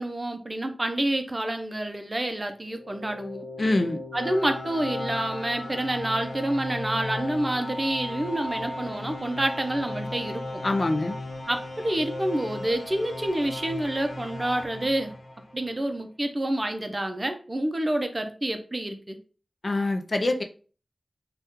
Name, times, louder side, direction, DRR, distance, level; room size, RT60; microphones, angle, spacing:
voice 1, 0.0-3.5 4.1-10.6 11.5-15.1 15.5-19.2, right 1 dB, 30° right, 6 dB, 0.5 m, -28 dB
sound 1, 2.7-15.7, left 1 dB, 75° left, 0.9 m, -36 dB
voice 2, 3.6-4.0 10.6-11.2 19.6-20.4, left 2 dB, 55° left, 5 dB, 0.4 m, -24 dB
2.8 x 2.3 x 3.5 m, 0.38 s
wide cardioid pair, 80°, 0 cm